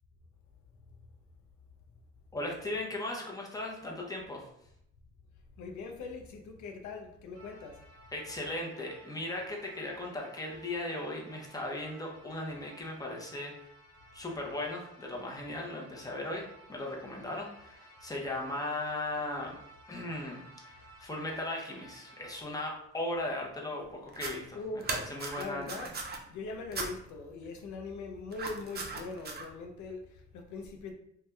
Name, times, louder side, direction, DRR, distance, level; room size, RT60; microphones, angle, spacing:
voice 1, 2.3-4.5 8.1-13.5 14.1-16.4 16.7-19.5 19.9-20.5 20.8-24.6 24.9-25.7, left 1 dB, 10° left, 0.7 m, -37 dB
voice 2, 5.6-7.8 24.5-25.0 25.4-25.9 26.3-30.9, left 3 dB, 70° left, 0.5 m, -41 dB
sound 1, 7.3-22.4, right 1 dB, 45° left, 1.2 m, -56 dB
sound 2, 24.1-24.3 24.8-26.2 26.7-26.9 28.3-29.4, right 4 dB, 35° right, 0.6 m, -37 dB
2.6 x 2.3 x 3.3 m
cardioid pair, 90°, 30 cm